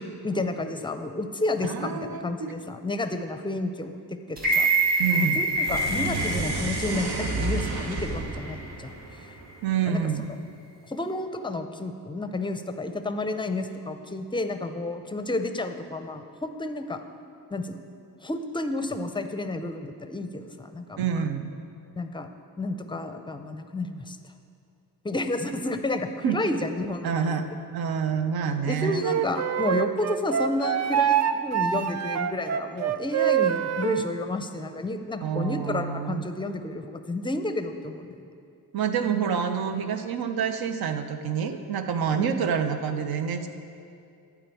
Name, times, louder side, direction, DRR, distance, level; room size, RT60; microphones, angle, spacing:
voice 1, 0.0-9.0 9.8-10.0 10.8-17.0 17.5-17.8 18.2-21.2 22.0-22.3 22.6-24.2 25.0-27.3 28.6-38.1 42.1-42.4, left 2 dB, 15° left, 8 dB, 0.5 m, -31 dB
voice 2, 1.6-2.5 5.0-5.4 9.6-10.3 21.0-21.5 26.2-26.4 27.0-27.5 27.7-29.1 35.2-36.2 38.7-43.5, right 7 dB, 70° right, 8 dB, 0.8 m, -27 dB
sound 1, 4.4-8.5 8.9-9.0, right 2 dB, 25° right, 1.7 m, -26 dB
sound 2, 5.5-9.9, right 3 dB, 85° right, 1.2 m, -31 dB
Wind instrument woodwind instrument, 29.0-34.1, right 9 dB, 45° right, 0.4 m, -25 dB
11.0 x 4.8 x 8.3 m, 2.5 s
wide cardioid pair, 125°, 38 cm